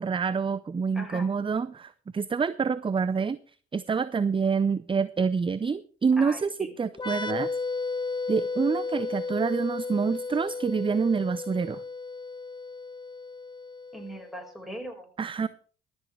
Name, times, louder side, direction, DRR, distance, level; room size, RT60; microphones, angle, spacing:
voice 1, 0.0-3.4 3.7-7.5 8.3-11.8 15.2-15.5, right 5 dB, 20° right, 17 dB, 0.5 m, -27 dB
voice 2, 0.9-1.3 6.2-6.7 13.9-15.1 15.4-15.5, equal, ahead, 3 dB, 4.9 m, -40 dB
sound 1, 6.9-14.4, left 4 dB, 15° left, 1.1 m, -34 dB
23.5 x 8.0 x 3.3 m, 0.42 s
hypercardioid pair, 50°, 30 cm